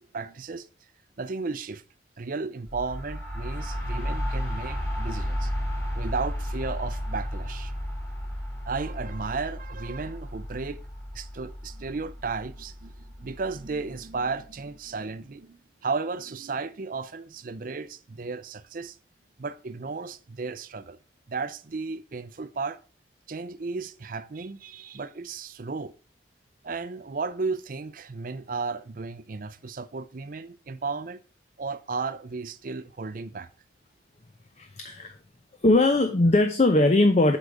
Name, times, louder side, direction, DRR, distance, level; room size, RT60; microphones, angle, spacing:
voice 1, 0.1-0.7 1.2-1.8 2.2-5.5 5.9-7.7 8.7-10.8 11.1-19.0 19.4-21.0 21.3-22.8 23.3-25.9 26.6-31.2 31.6-33.5, right 4 dB, 50° right, 0.5 m, -34 dB
sound 1, 2.7-14.3, equal, 15° left, 3.4 m, -33 dB
voice 2, 34.6-35.2 35.6-37.4, left 2 dB, 40° left, 0.7 m, -20 dB
8.0 x 5.5 x 4.9 m
head